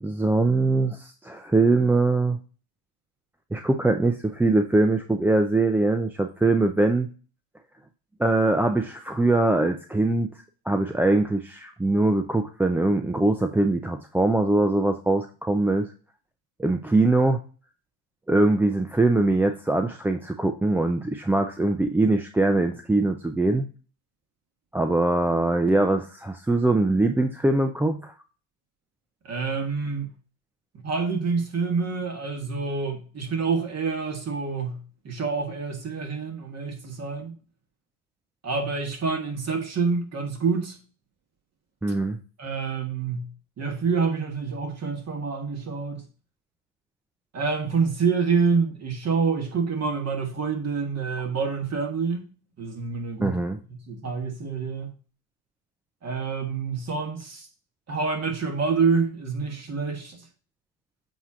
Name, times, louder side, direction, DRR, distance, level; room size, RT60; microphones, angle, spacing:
voice 1, 0.0-2.4 3.5-7.1 8.2-10.3 10.7-15.9 16.6-17.4 18.3-23.7 24.7-28.1 41.8-42.2 53.2-53.6, right 2 dB, 5° right, 0.4 m, -22 dB
voice 2, 29.2-30.1 30.8-37.4 38.4-40.8 42.4-43.3 43.6-46.0 47.3-52.3 52.6-53.4 53.7-54.9 56.0-57.5 57.9-60.2, right 5 dB, 35° right, 1.9 m, -27 dB
7.8 x 3.0 x 4.8 m
supercardioid pair, 95°, 47 cm